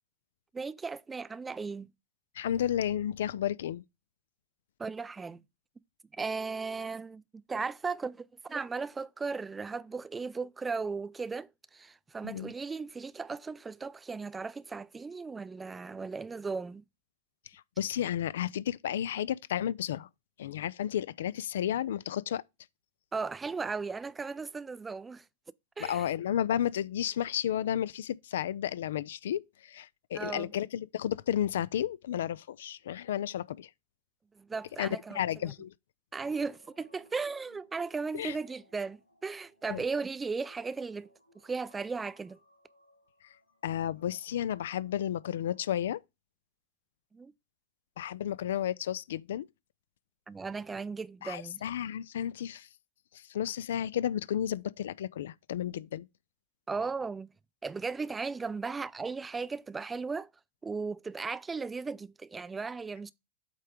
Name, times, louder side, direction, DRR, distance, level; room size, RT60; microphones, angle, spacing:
voice 1, 0.5-1.9 4.8-5.4 6.2-7.2 7.5-16.8 23.1-25.2 25.8-26.1 30.1-30.5 34.3-35.5 36.1-41.1 41.4-42.4 47.1-47.3 50.3-51.6 56.7-57.3 57.6-60.3 60.6-63.1, right 4 dB, 15° right, 0.4 m, -36 dB
voice 2, 2.4-3.8 12.2-12.5 17.5-20.1 20.4-22.4 25.8-33.7 34.8-34.9 35.1-35.7 38.1-38.4 39.7-39.8 43.6-46.0 48.0-49.5 51.2-52.7 53.1-56.1, left 10 dB, 60° left, 0.3 m, -32 dB
sound 1, 36.2-46.0, left 1 dB, 90° left, 3.6 m, -64 dB
8.2 x 3.3 x 5.0 m
figure-of-eight pair, 90°, 0 cm